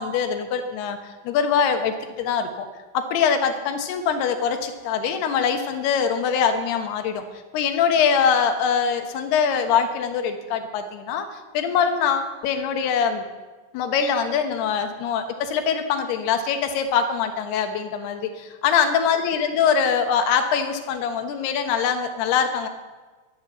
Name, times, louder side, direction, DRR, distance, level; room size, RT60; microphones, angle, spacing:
voice 1, 0.0-2.7 2.9-7.2 7.5-13.2 13.7-22.7, left 7 dB, 80° left, 6 dB, 3.2 m, -23 dB
13.5 x 11.0 x 7.1 m, 1.3 s
omnidirectional pair, 4.6 m